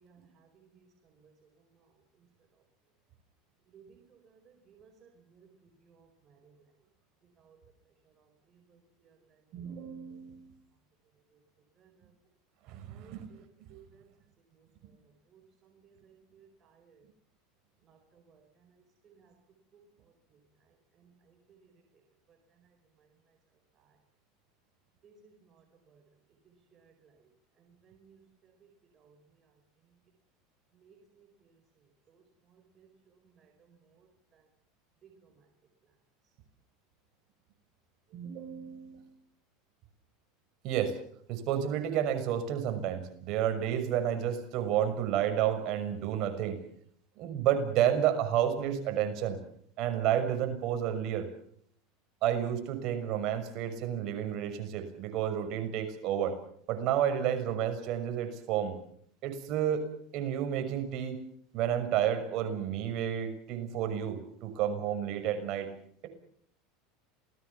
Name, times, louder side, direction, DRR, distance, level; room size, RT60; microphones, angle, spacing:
voice 1, 0.0-0.8 3.7-4.4 4.7-5.5 5.8-6.5 7.4-7.6 8.7-8.8 11.8-11.9 12.9-13.4 13.9-14.1 15.3-17.0 17.9-18.4 19.0-19.3 21.5-21.6 25.0-25.3 26.7-26.9 27.8-28.2 29.0-29.2 30.8-31.3 32.8-32.9 33.4-33.5 34.0-34.1 35.0-35.1, right 6 dB, 30° right, 3 dB, 4.9 m, -60 dB
voice 2, 9.5-10.5 12.7-13.3 13.6-13.8 38.1-39.0 40.6-40.9 41.3-46.6 47.2-49.4 49.8-51.3 52.2-56.3 56.7-58.8 59.2-59.8 60.1-61.2 61.5-65.7, right 10 dB, 50° right, 6 dB, 6.1 m, -31 dB
28.5 x 19.5 x 7.1 m, 0.65 s
supercardioid pair, 135°, 0 cm